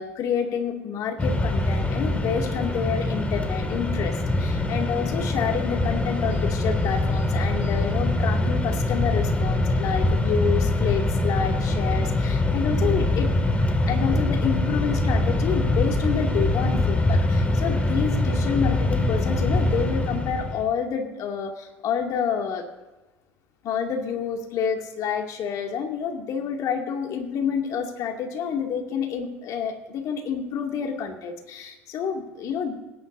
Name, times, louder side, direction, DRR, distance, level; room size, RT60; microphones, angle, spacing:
voice 1, 0.0-13.3 13.9-22.6 23.6-32.8, left 7 dB, 55° left, 2 dB, 2.4 m, -28 dB
Mechanisms, 1.2-20.6, left 2 dB, 20° left, 2.3 m, -23 dB
18.5 x 10.5 x 2.7 m, 1.1 s
hypercardioid pair, 75°, 7 cm